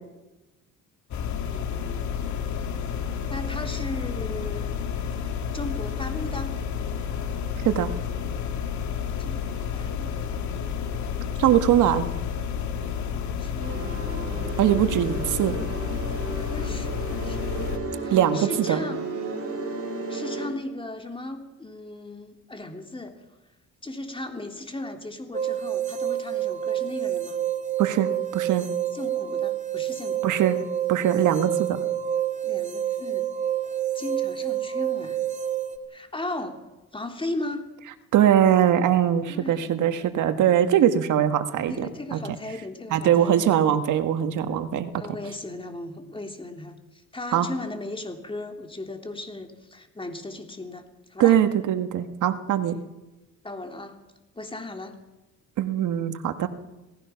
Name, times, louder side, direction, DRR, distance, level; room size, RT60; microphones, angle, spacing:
sound 1, 1.1-17.8, left 7 dB, 70° left, 2.3 m, -30 dB
voice 1, 1.5-2.1 3.0-4.7 5.5-6.5 9.2-10.4 11.5-11.6 13.1-14.0 16.4-17.7 18.0-19.0 20.1-23.2 23.8-27.4 28.9-30.3 32.4-33.3 33.9-35.2 35.9-36.6 36.9-37.7 39.3-39.6 40.7-40.9 41.7-43.5 45.0-51.4 53.4-54.0 54.3-54.9, left 2 dB, 15° left, 4 dB, 3.4 m, -37 dB
voice 2, 11.4-12.0 14.6-15.5 18.1-18.8 27.8-28.7 30.2-30.6 30.9-31.8 38.1-42.2 42.9-44.9 47.3-47.5 51.2-52.8 55.6-56.5, right 10 dB, 80° right, 9 dB, 1.7 m, -21 dB
sound 2, 13.6-20.5, right 3 dB, 50° right, 7.7 m, -33 dB
sound 3, 25.3-35.8, right 10 dB, 25° right, 2.1 m, -28 dB
27.5 x 18.5 x 5.9 m, 1.1 s
cardioid pair, 90°, 30 cm